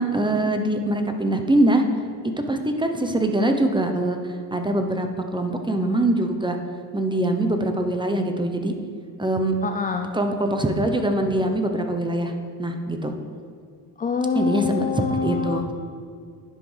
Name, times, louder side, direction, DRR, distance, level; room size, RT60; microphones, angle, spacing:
voice 1, 0.0-1.8 2.5-5.1 5.3-6.6 6.9-8.7 9.2-9.5 10.1-12.3 12.6-13.1 14.4-14.8 15.2-15.7, right 1 dB, 10° right, 5 dB, 0.7 m, -23 dB
voice 2, 9.6-10.1 14.0-15.7, left 5 dB, 20° left, 5 dB, 0.4 m, -25 dB
10.5 x 5.1 x 3.3 m, 2.2 s
cardioid pair, 80°, 44 cm